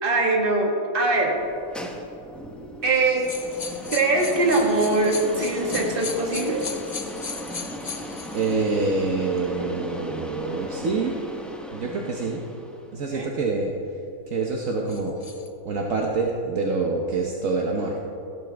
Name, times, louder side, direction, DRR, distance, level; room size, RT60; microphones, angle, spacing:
voice 1, 0.0-1.3 2.8-3.3 3.7-6.6 13.1-13.3, right 2 dB, 40° right, 0 dB, 1.8 m, -22 dB
sound 1, 1.4-13.0, equal, ahead, 0.6 m, -37 dB
sound 2, 3.2-8.6 9.4-9.5 14.9-15.5, left 5 dB, 60° left, 0.4 m, -36 dB
voice 2, 8.3-11.2 11.7-12.4 12.9-13.7 14.3-15.2 15.6-18.0, right 3 dB, 65° right, 0 dB, 1.3 m, -26 dB
16.0 x 12.5 x 3.4 m, 2.7 s
omnidirectional pair, 1.5 m